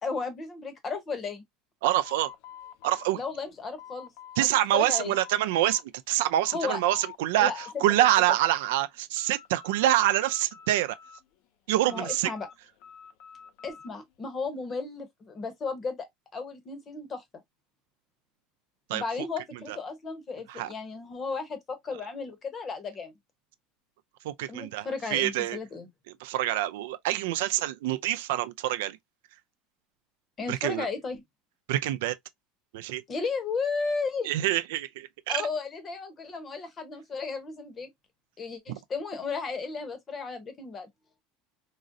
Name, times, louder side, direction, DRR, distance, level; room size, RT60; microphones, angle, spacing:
voice 1, 0.0-1.4 3.1-4.1 4.4-5.2 6.5-6.8 7.4-7.8 11.9-12.5 13.6-16.1 16.3-17.2 18.9-23.1 24.5-25.9 30.4-31.2 33.1-34.3 35.3-37.9 38.4-40.9, left 4 dB, 20° left, 0.7 m, -34 dB
voice 2, 1.8-2.3 2.8-3.2 4.4-5.8 6.1-10.9 11.7-12.3 18.9-19.0 20.5-20.7 24.2-25.6 26.2-29.0 30.5-30.9 31.7-32.2 32.7-33.0 34.2-35.4, right 14 dB, 90° right, 0.3 m, -26 dB
sound 1, 2.0-4.5 4.7-5.8 6.2-7.2 7.4-8.5 8.9-9.9 10.1-11.4 11.9-13.9, left 9 dB, 55° left, 0.4 m, -47 dB
3.8 x 2.0 x 2.5 m
cardioid pair, 165°, 0 cm